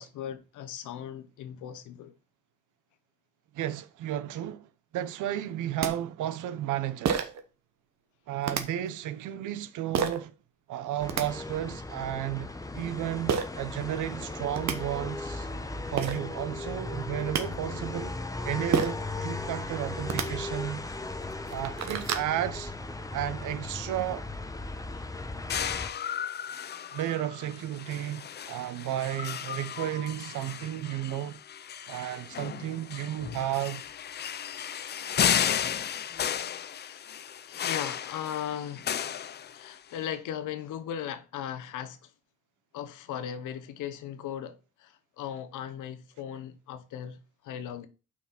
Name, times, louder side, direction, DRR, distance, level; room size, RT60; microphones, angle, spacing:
voice 1, 0.0-2.1 36.8-37.0 37.5-38.9 39.5-42.1 42.7-47.9, left 9 dB, 85° left, 1.0 m, -38 dB
voice 2, 3.5-4.7 4.9-7.3 8.3-10.3 10.7-15.5 15.9-18.2 18.4-20.8 21.5-22.7 23.1-24.3 26.9-31.4 31.9-33.8, right 12 dB, 80° right, 0.8 m, -33 dB
sound 1, 5.5-5.6 5.8-5.9 7.0-7.4 8.4-8.6 9.9-10.2 10.9-11.2 13.3-13.5 14.2-14.3 14.5-14.8 15.6-15.7 16.0-16.2 17.0-17.4 18.7-19.0 20.0-20.3 20.9-21.0 21.4-22.3, right 7 dB, 65° right, 1.2 m, -28 dB
sound 2, 11.0-25.9, left 2 dB, 10° left, 0.8 m, -37 dB
sound 3, 25.5-40.0, left 9 dB, 35° left, 0.4 m, -34 dB
5.7 x 4.9 x 5.9 m
cardioid pair, 90°, 30 cm